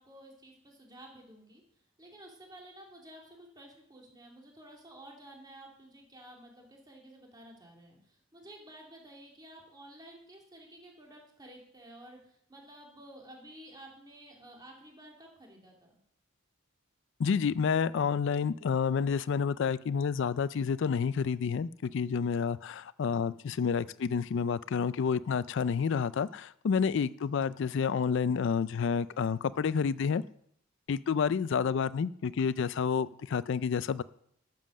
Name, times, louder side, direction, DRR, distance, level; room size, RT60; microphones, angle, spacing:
voice 1, 0.0-1.6 2.0-16.0, right 1 dB, 20° right, 0 dB, 2.5 m, -52 dB
voice 2, 17.2-30.2 30.9-34.0, left 6 dB, 65° left, 17 dB, 0.4 m, -29 dB
12.5 x 7.5 x 6.3 m, 0.69 s
head